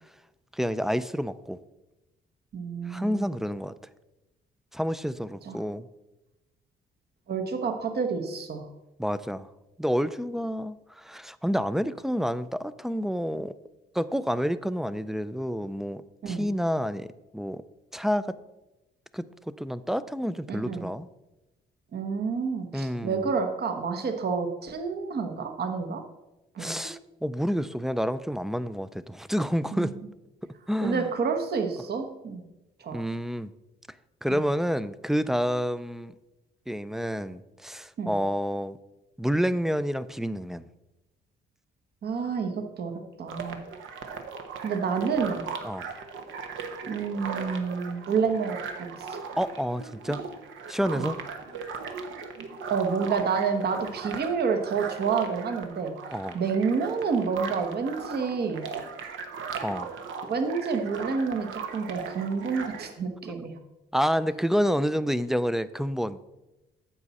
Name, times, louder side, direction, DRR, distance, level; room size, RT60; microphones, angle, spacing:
voice 1, 0.5-1.6 2.9-3.7 4.7-5.9 9.0-9.5 9.8-13.5 13.9-17.6 17.9-18.4 19.1-21.1 22.7-23.3 26.6-29.9 30.7-31.1 32.9-33.5 34.2-36.1 36.7-38.8 39.2-40.6 45.6-45.9 49.4-50.2 50.7-51.2 56.1-56.4 59.6-59.9 63.9-66.2, equal, ahead, 15 dB, 0.4 m, -29 dB
voice 2, 2.5-3.3 5.4-5.6 7.3-8.6 16.2-16.4 20.5-20.9 21.9-26.0 26.5-26.9 29.7-29.9 30.8-32.4 32.8-33.0 34.3-34.4 38.0-38.1 42.0-43.6 44.6-45.4 46.9-49.2 51.0-51.1 52.7-55.9 56.3-58.7 60.2-63.6, right 5 dB, 55° right, 5 dB, 1.1 m, -29 dB
sound 1, 43.3-62.9, right 5 dB, 75° right, 1.0 m, -38 dB
9.9 x 7.1 x 4.1 m, 1.0 s
cardioid pair, 90°, 20 cm